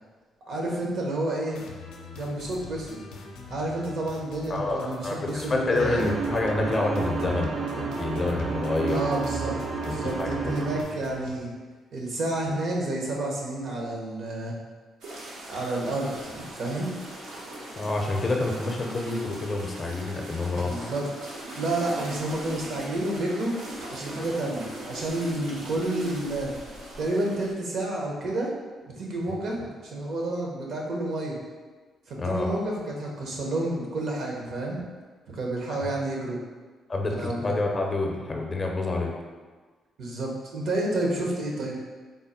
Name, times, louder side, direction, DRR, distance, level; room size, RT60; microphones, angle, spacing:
voice 1, 0.5-1.6 2.1-3.0 3.5-6.1 8.9-9.6 9.9-11.5 11.9-14.5 15.5-17.0 20.6-23.5 23.9-26.5 27.0-28.5 29.0-31.4 32.1-34.8 35.3-36.4 37.2-37.6 40.0-41.7, right 2 dB, 65° right, -1 dB, 0.9 m, -30 dB
sound 1, 1.5-11.4, left 4 dB, 85° left, 0.4 m, -44 dB
voice 2, 4.5-9.0 9.9-10.5 17.8-20.9 32.2-32.6 35.8-35.9 36.9-39.1, left 2 dB, 35° left, 1 dB, 0.5 m, -28 dB
sound 2, 5.8-10.8, right 4 dB, 45° right, 0.3 m, -31 dB
sound 3, 15.0-27.5, right 1 dB, 90° right, 0.9 m, -40 dB
3.7 x 2.1 x 4.2 m, 1.4 s
cardioid pair, 90°, 0 cm